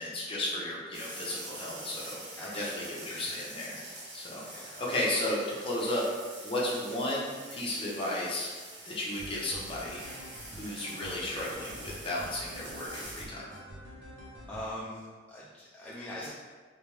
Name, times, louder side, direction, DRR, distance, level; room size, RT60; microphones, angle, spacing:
voice 1, 0.0-3.8 4.1-4.4 4.8-6.0 6.4-8.5 8.9-10.0 10.6-13.5, left 1 dB, 30° left, -5 dB, 0.9 m, -34 dB
sound 1, 0.9-13.2, right 1 dB, 80° right, 1.2 m, -45 dB
voice 2, 2.4-3.4 4.5-4.8 14.5-16.3, left 1 dB, 10° left, -8 dB, 0.5 m, -42 dB
sound 2, 9.2-14.7, equal, 65° right, 0.7 m, -47 dB
3.4 x 3.3 x 3.2 m, 1.5 s
head